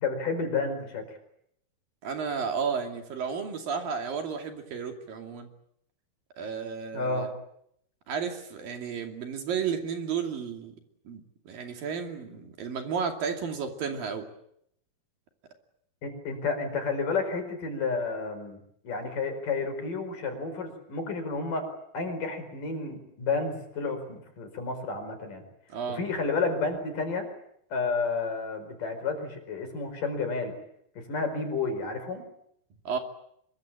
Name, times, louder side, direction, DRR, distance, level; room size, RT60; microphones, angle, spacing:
voice 1, 0.0-1.0 6.9-7.3 16.0-18.6 18.8-21.7 21.9-25.4 25.9-27.3 27.7-30.5 31.0-32.2, left 4 dB, 60° left, 6 dB, 6.3 m, -31 dB
voice 2, 2.0-5.5 6.4-7.3 8.1-10.8 11.1-14.3 25.7-26.0 32.9-33.0, right 6 dB, 65° right, 4 dB, 4.3 m, -32 dB
25.0 x 23.0 x 8.9 m, 0.72 s
omnidirectional pair, 4.4 m